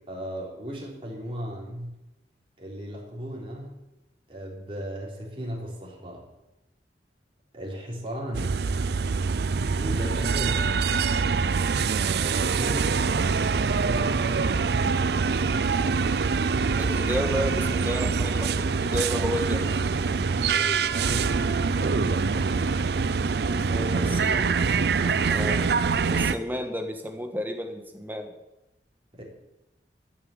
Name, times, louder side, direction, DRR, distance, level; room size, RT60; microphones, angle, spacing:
voice 1, 0.1-2.0 2.6-3.8 4.3-6.2 7.5-8.7 9.8-10.8 12.2-13.1 13.8-14.5 20.5-23.0 23.4-25.4 29.1-29.2, equal, 30° right, -3 dB, 3.5 m, -36 dB
sound 1, 8.3-26.4, right 5 dB, 60° right, 0.5 m, -24 dB
voice 2, 16.7-19.7 24.1-24.3 25.3-25.7 26.1-28.3, equal, 10° right, 4 dB, 1.6 m, -31 dB
14.0 x 7.4 x 8.3 m, 0.96 s
head